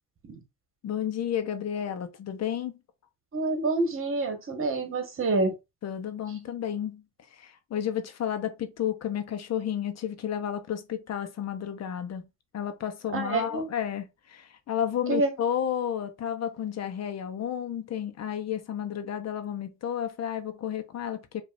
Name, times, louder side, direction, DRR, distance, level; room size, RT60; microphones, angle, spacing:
voice 1, 0.8-2.8 5.8-7.0 7.3-12.3 12.5-21.4, left 9 dB, 60° left, 0.9 m, -32 dB
voice 2, 3.3-5.5 13.1-13.7 15.1-15.3, right 3 dB, 45° right, 1.5 m, -27 dB
5.2 x 2.7 x 2.6 m
cardioid pair, 90°, 30 cm